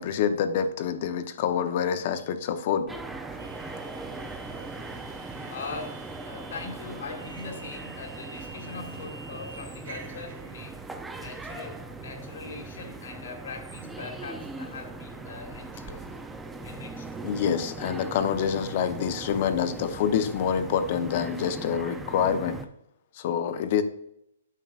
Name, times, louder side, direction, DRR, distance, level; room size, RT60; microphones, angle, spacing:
voice 1, 0.0-2.9 17.2-22.6 23.1-23.8, left 8 dB, 45° left, 10 dB, 0.6 m, -27 dB
sound 1, 2.9-22.7, right 3 dB, 5° right, 0.4 m, -40 dB
sound 2, 3.4-11.0, right 5 dB, 65° right, 1.2 m, -48 dB
voice 2, 5.5-10.8 11.2-16.1 16.6-17.1, left 4 dB, 70° left, 3 dB, 1.8 m, -41 dB
9.1 x 5.8 x 2.4 m, 0.77 s
hypercardioid pair, 155°, 0 cm